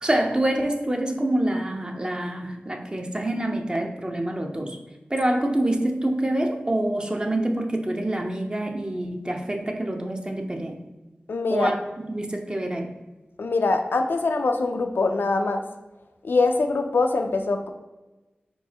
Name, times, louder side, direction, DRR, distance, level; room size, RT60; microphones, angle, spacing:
voice 1, 0.0-4.8 5.1-10.8 11.5-12.9, right 1 dB, 25° right, 4 dB, 0.6 m, -26 dB
voice 2, 11.3-11.7 13.4-15.6 16.2-17.7, left 3 dB, 85° left, 5 dB, 0.4 m, -23 dB
4.5 x 4.1 x 2.8 m, 1.1 s
wide cardioid pair, 65°, 4 cm